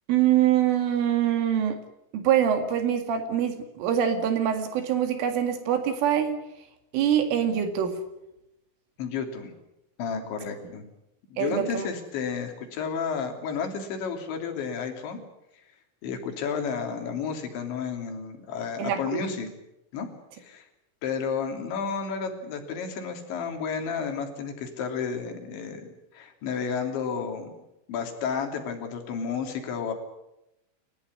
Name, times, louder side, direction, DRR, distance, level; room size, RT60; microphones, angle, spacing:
voice 1, 0.1-1.8 2.1-6.4 6.9-8.0 11.4-11.9 18.8-19.2, right 9 dB, 70° right, 7 dB, 4.6 m, -24 dB
voice 2, 9.0-9.5 10.0-10.9 11.3-15.2 16.0-19.5 19.9-20.1 20.4-20.7 21.0-27.5 27.9-29.9, left 6 dB, 65° left, 4 dB, 5.3 m, -32 dB
29.5 x 14.5 x 9.7 m, 0.88 s
omnidirectional pair, 5.9 m